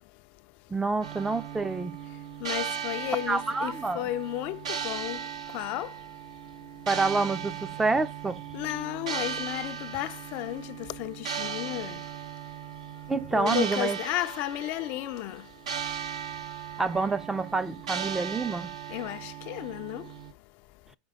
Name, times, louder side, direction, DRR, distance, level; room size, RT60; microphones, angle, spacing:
voice 1, 0.7-2.0 3.3-4.0 6.9-8.4 13.1-14.0 16.8-18.7, right 3 dB, 10° right, 0.5 m, -28 dB
sound 1, 1.0-20.3, right 8 dB, 80° right, 1.0 m, -37 dB
voice 2, 2.4-4.6 4.8-5.2 5.5-5.9 8.5-10.7 11.0-12.0 13.3-15.4 18.9-20.0, left 15 dB, 50° left, 0.4 m, -33 dB
5.4 x 5.2 x 3.6 m
hypercardioid pair, 110°, 3 cm